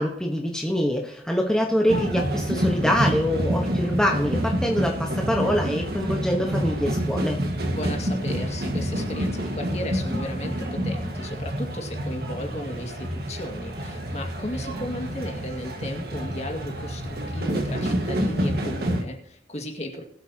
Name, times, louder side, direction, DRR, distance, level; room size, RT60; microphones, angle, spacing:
voice 1, 0.0-7.4, equal, 5° left, 0 dB, 1.2 m, -24 dB
sound 1, 1.9-19.0, equal, 55° right, 1.7 m, -28 dB
voice 2, 7.7-20.0, left 1 dB, 35° left, 2 dB, 2.1 m, -35 dB
21.0 x 8.0 x 2.9 m, 0.74 s
head